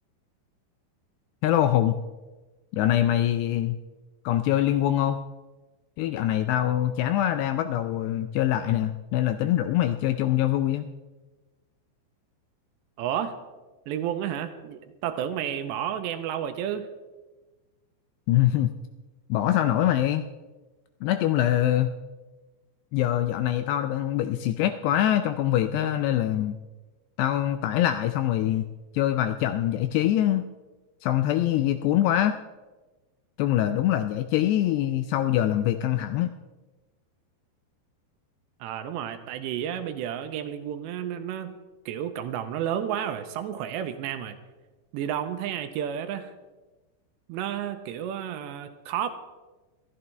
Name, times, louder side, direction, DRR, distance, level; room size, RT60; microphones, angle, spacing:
voice 1, 1.4-2.0 2.7-3.8 4.3-5.2 6.0-10.9 18.3-18.7 19.3-20.2 21.0-22.0 22.9-26.6 27.2-28.7 28.9-30.5 31.0-32.4 33.4-36.3, left 12 dB, 85° left, 9 dB, 2.4 m, -24 dB
voice 2, 13.0-13.4 13.9-16.9 38.6-41.6 41.9-44.4 44.9-46.3 47.3-49.1, right 9 dB, 80° right, 8 dB, 2.8 m, -31 dB
21.5 x 13.0 x 3.4 m, 1.2 s
omnidirectional pair, 5.3 m